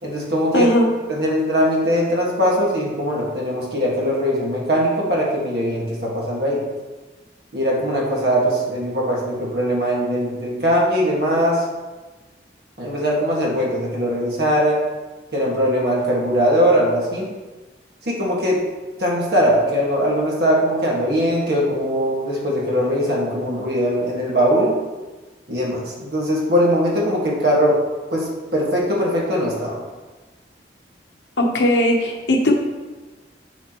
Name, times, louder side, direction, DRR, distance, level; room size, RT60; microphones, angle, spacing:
voice 1, 0.0-0.7 1.1-6.6 7.5-11.7 12.8-14.8 15.3-17.3 18.0-18.6 19.0-24.8 25.5-27.8 28.1-29.8, equal, 60° right, -4 dB, 1.7 m, -20 dB
voice 2, 0.5-0.9 31.4-32.5, left 1 dB, 85° left, 1 dB, 0.9 m, -18 dB
7.0 x 6.3 x 3.0 m, 1.2 s
head